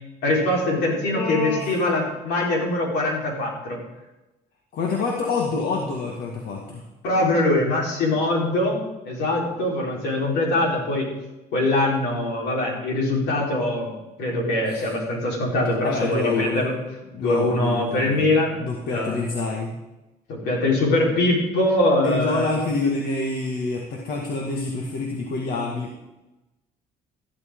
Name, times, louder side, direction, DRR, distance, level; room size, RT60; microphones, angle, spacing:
voice 1, 0.2-3.8 7.0-11.1 11.5-13.9 14.2-16.7 17.2-18.6 18.9-19.1 20.3-22.5, left 1 dB, 80° left, -2 dB, 4.3 m, -23 dB
voice 2, 1.1-1.9 4.7-6.8 14.7-14.9 15.8-16.7 17.1-19.8 22.0-25.9, left 3 dB, 65° left, 0 dB, 2.0 m, -27 dB
14.0 x 12.5 x 3.8 m, 1.0 s
cardioid pair, 110°, 17 cm